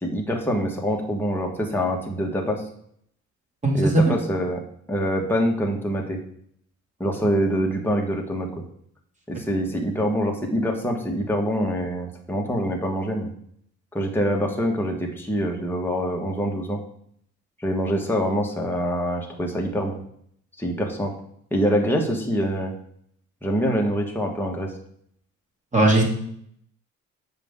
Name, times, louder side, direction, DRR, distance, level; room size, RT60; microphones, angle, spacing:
voice 1, 0.0-2.6 3.7-4.6 4.9-6.2 7.0-8.5 9.3-13.3 13.9-16.8 17.6-20.0 20.6-21.1 21.5-22.7 23.4-24.7, equal, 5° left, -1 dB, 1.5 m, -25 dB
voice 2, 3.6-4.2 25.7-26.1, right 2 dB, 25° right, -1 dB, 2.3 m, -18 dB
7.2 x 5.4 x 3.7 m, 0.67 s
cardioid pair, 90°, 30 cm